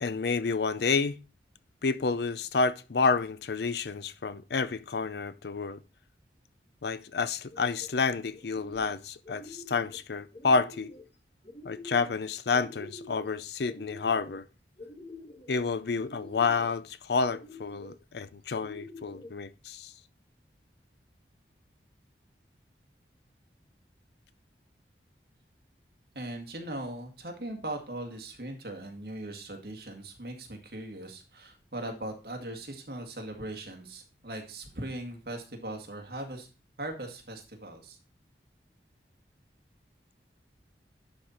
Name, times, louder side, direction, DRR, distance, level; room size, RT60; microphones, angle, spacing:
voice 1, 0.0-1.2 1.8-5.8 6.8-10.9 11.6-14.5 15.5-19.9, left 4 dB, 70° left, 0.5 m, -29 dB
sound 1, 7.4-7.9 8.3-9.0 9.2-10.0 10.3-11.0 11.4-12.2 12.5-13.3 13.6-14.4 14.8-15.5 16.0-16.7 17.3-18.0 18.5-19.3, left 2 dB, 35° left, 1.6 m, -47 dB
voice 2, 26.2-36.5 36.8-38.0, right 1 dB, 60° right, 1.9 m, -39 dB
11.5 x 4.1 x 4.3 m
head